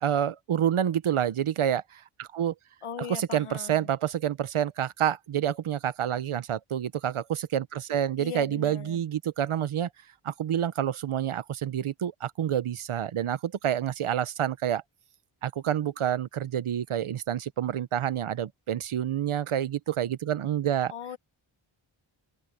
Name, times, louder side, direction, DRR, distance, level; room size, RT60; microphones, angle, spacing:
voice 1, 0.0-2.5 3.1-9.9 10.2-14.8 15.4-20.9, right 10 dB, 80° right, 0.9 m, -28 dB
voice 2, 2.8-3.9 8.2-9.0 20.9-21.2, left 7 dB, 80° left, 1.2 m, -39 dB
open air
wide cardioid pair, 85°, 49 cm